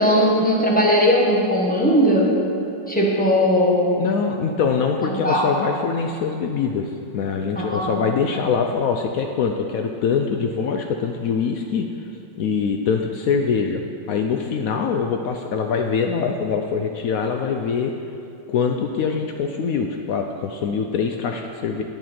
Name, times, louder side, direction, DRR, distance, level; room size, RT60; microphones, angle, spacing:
voice 1, 0.0-2.3 2.9-4.0 5.2-5.4 7.5-8.0, equal, 5° left, -3 dB, 0.9 m, -18 dB
voice 2, 4.0-11.9 12.4-13.8 14.1-17.9 18.5-21.8, left 6 dB, 85° left, 4 dB, 0.7 m, -23 dB
9.3 x 8.7 x 4.3 m, 2.7 s
omnidirectional pair, 2.0 m